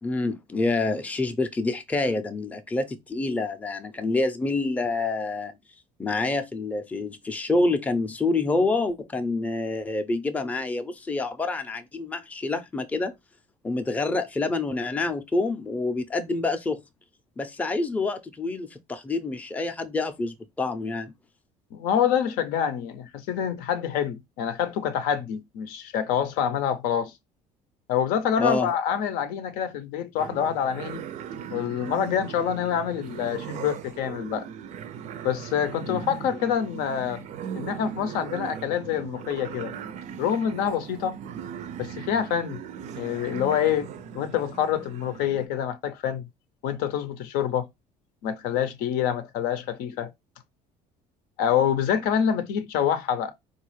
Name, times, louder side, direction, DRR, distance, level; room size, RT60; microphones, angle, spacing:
voice 1, 0.0-5.5 6.0-13.1 13.6-16.8 17.4-21.1 28.4-28.7 35.9-36.0, left 3 dB, 10° left, 0.5 m, -27 dB
voice 2, 21.7-27.1 27.9-31.0 31.5-34.5 35.2-37.2 37.5-39.8 40.2-41.2 41.8-42.6 43.0-43.9 44.1-46.3 46.6-47.7 48.2-50.1 51.4-53.3, left 8 dB, 80° left, 0.6 m, -26 dB
sound 1, 30.2-45.5, right 8 dB, 55° right, 0.4 m, -38 dB
4.0 x 2.3 x 3.1 m
cardioid pair, 120°, 15 cm